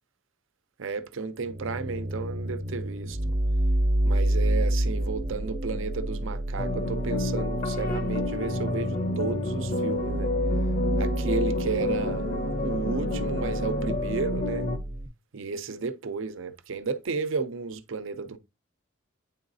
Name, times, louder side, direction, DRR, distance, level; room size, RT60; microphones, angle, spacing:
voice 1, 0.8-3.2 4.0-10.3 11.0-12.3 12.6-14.7 15.3-18.4, right 4 dB, 70° right, 0.6 m, -33 dB
sound 1, 1.4-15.1, right 1 dB, 35° right, 0.8 m, -29 dB
sound 2, 6.6-14.8, left 2 dB, 40° left, 0.8 m, -29 dB
9.1 x 3.9 x 2.7 m
head